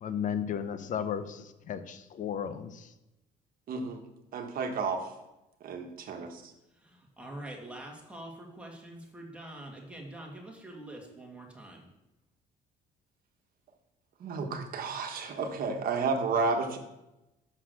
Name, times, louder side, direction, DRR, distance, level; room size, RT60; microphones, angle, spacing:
voice 1, 0.0-2.9, left 8 dB, 50° left, 11 dB, 0.8 m, -34 dB
voice 2, 3.7-4.0 4.3-5.1 5.6-6.3 14.2-16.8, right 4 dB, 60° right, 5 dB, 1.4 m, -31 dB
voice 3, 6.8-11.9, right 1 dB, 5° right, -1 dB, 2.1 m, -45 dB
6.5 x 5.8 x 6.4 m, 0.93 s
cardioid pair, 110°, 17 cm